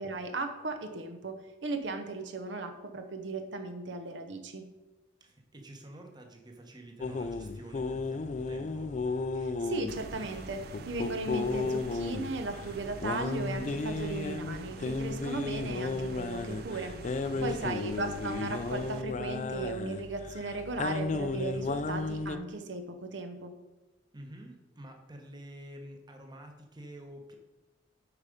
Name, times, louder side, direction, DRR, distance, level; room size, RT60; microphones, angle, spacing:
voice 1, 0.0-1.4 1.6-4.6 9.4-23.5, right 3 dB, 70° right, 6 dB, 0.8 m, -37 dB
voice 2, 5.2-9.0 17.3-17.9 24.1-27.3, right 1 dB, 25° right, 3 dB, 1.0 m, -49 dB
sound 1, 7.0-22.4, left 3 dB, 40° left, 0.4 m, -34 dB
sound 2, 9.9-19.0, right 4 dB, 55° right, 0.4 m, -46 dB
8.3 x 5.0 x 5.1 m, 1.1 s
head